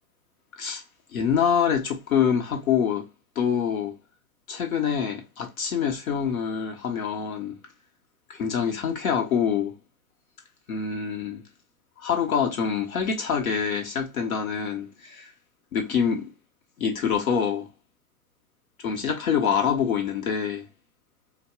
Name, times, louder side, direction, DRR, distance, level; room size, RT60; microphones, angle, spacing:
voice 1, 1.1-3.1 3.4-4.0 4.5-7.6 8.3-9.8 10.7-11.4 12.0-15.3 15.7-16.3 16.8-17.7 18.8-20.7, left 7 dB, 70° left, 1.1 m, -25 dB
4.1 x 2.2 x 2.4 m
figure-of-eight pair, 110°, 43 cm